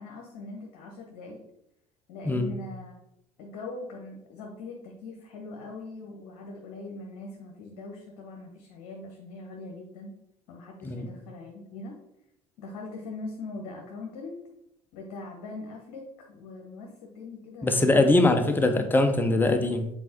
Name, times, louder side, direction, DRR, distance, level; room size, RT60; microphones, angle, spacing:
voice 1, 0.0-1.4 2.1-2.9 3.4-10.1 10.5-12.0 12.6-14.4 14.9-18.3, left 3 dB, 55° left, 0 dB, 1.0 m, -41 dB
voice 2, 17.6-19.9, left 2 dB, 10° left, 7 dB, 0.7 m, -22 dB
7.4 x 4.3 x 2.9 m, 0.84 s
figure-of-eight pair, 60°, 20 cm